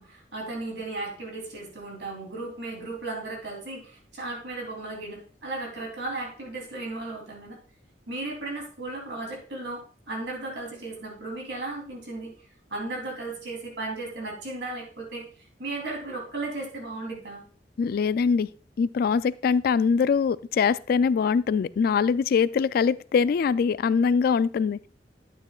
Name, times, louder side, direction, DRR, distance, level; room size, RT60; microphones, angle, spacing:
voice 1, 0.0-7.6 8.1-12.3 12.7-15.2 15.6-17.4, right 2 dB, 75° right, 0 dB, 3.2 m, -35 dB
voice 2, 17.8-18.5 18.8-24.8, left 6 dB, 60° left, 18 dB, 0.3 m, -23 dB
11.0 x 9.0 x 2.4 m, 0.40 s
head